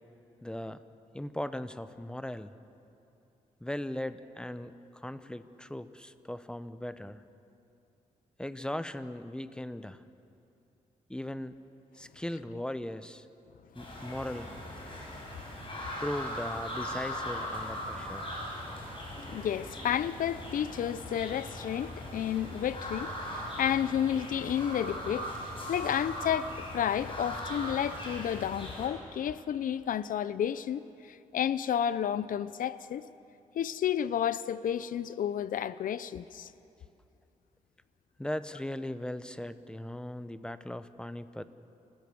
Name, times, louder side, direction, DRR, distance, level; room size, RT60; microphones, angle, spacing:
voice 1, 0.4-0.8 1.1-2.5 3.6-4.7 5.0-7.2 8.4-10.0 11.1-11.6 12.0-13.3 13.7-14.5 16.0-18.3 38.2-41.4, left 1 dB, 5° left, 0.9 m, -38 dB
sound 1, 13.8-28.9, equal, 40° left, 6.3 m, -39 dB
voice 2, 19.3-25.3 25.7-33.1 33.5-36.5, left 9 dB, 75° left, 0.7 m, -31 dB
28.5 x 16.0 x 7.1 m
cardioid pair, 90°, 14 cm